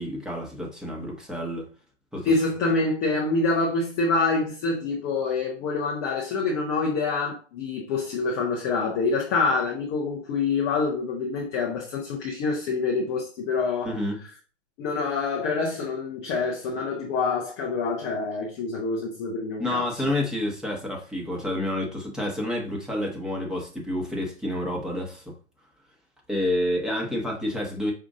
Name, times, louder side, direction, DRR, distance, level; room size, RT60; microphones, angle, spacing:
voice 1, 0.0-1.6 2.1-2.3 13.8-14.2 19.6-25.3 26.3-27.9, left 1 dB, ahead, 0.8 m, -29 dB
voice 2, 2.2-13.9 14.8-19.9, left 4 dB, 15° left, 0.4 m, -26 dB
5.4 x 2.5 x 3.5 m
hypercardioid pair, 130°, 37 cm